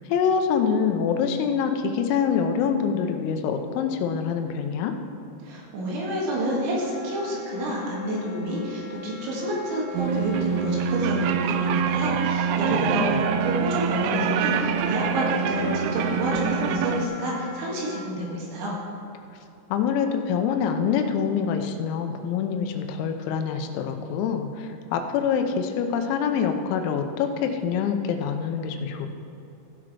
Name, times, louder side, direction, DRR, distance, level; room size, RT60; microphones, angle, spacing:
voice 1, 0.1-4.9 12.7-13.2 19.7-29.1, left 7 dB, 85° left, 6 dB, 3.5 m, -25 dB
voice 2, 5.4-18.8, equal, 70° right, -3 dB, 3.9 m, -29 dB
Wind instrument woodwind instrument, 6.8-18.0, left 6 dB, 50° left, 3.6 m, -41 dB
sound 1, 10.0-17.1, right 7 dB, 85° right, 2.7 m, -25 dB
16.0 x 5.9 x 4.8 m, 2.8 s
omnidirectional pair, 6.0 m